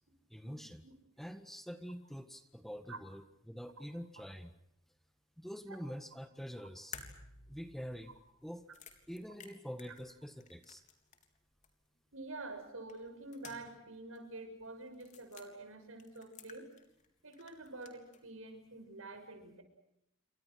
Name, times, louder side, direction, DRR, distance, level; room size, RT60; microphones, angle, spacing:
voice 1, 0.3-0.8 1.2-4.5 5.4-7.0 7.5-8.1 8.4-8.6 9.1-10.8, equal, ahead, 9 dB, 1.6 m, -46 dB
sound 1, 6.9-11.4 11.6-11.7 12.9-13.9 14.1-14.2 14.9-15.5 16.0-17.1 17.3-18.2, left 6 dB, 35° left, 3.6 m, -54 dB
voice 2, 12.1-16.7 17.2-19.6, right 2 dB, 90° right, 7 dB, 6.8 m, -47 dB
29.0 x 25.5 x 6.4 m, 0.79 s
head